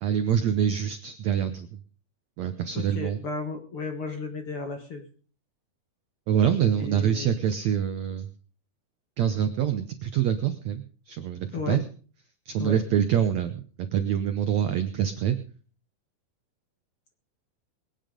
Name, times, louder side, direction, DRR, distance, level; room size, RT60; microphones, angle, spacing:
voice 1, 0.0-1.8 2.4-3.2 6.3-8.3 9.2-11.8 12.5-15.4, right 9 dB, 80° right, 9 dB, 1.6 m, -25 dB
voice 2, 2.7-5.0 6.8-7.3 11.5-11.8 12.6-12.8, left 4 dB, 45° left, 4 dB, 2.0 m, -34 dB
22.0 x 9.4 x 5.1 m, 0.42 s
omnidirectional pair, 4.5 m